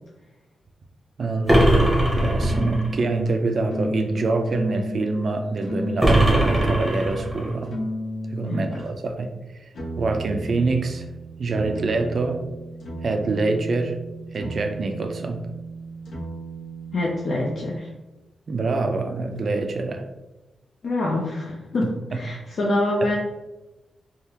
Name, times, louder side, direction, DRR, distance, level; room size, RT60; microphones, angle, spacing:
voice 1, 1.2-7.7 8.3-9.3 10.0-11.1 11.4-12.4 13.0-14.0 14.3-15.5 18.5-20.1 22.1-22.2, right 3 dB, 45° right, 5 dB, 0.4 m, -25 dB
sound 1, 1.5-2.9 6.0-7.5, right 1 dB, ahead, 0.7 m, -19 dB
sound 2, 2.2-8.9 9.7-17.8, equal, 85° left, 0.9 m, -34 dB
voice 2, 16.9-17.9 20.8-23.1, left 2 dB, 60° left, -3 dB, 0.4 m, -25 dB
3.5 x 2.3 x 2.8 m, 1.0 s
wide cardioid pair, 155°, 0 cm